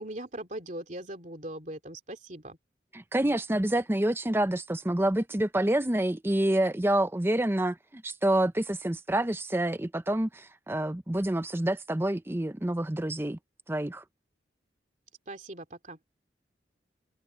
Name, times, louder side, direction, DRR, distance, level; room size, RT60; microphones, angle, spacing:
voice 1, 0.0-2.6 15.3-16.0, right 1 dB, 45° right, 2.8 m, -40 dB
voice 2, 2.9-13.4 13.7-14.0, right 1 dB, 15° right, 0.6 m, -27 dB
head